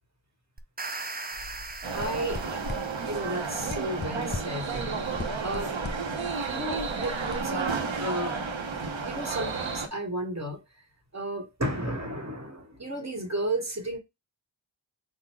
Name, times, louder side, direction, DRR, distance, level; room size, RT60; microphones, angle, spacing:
sound 1, 0.6-3.8, right 3 dB, 20° right, 0.5 m, -40 dB
sound 2, 1.3-8.0, left 2 dB, 20° left, 0.9 m, -40 dB
sound 3, 1.8-9.9, right 4 dB, 85° right, 1.0 m, -32 dB
voice 1, 1.9-2.7 3.1-5.8 6.5-8.4 9.0-10.6 11.1-14.0, right 1 dB, 35° right, 1.5 m, -33 dB
3.8 x 2.3 x 4.5 m
wide cardioid pair, 55°, 45 cm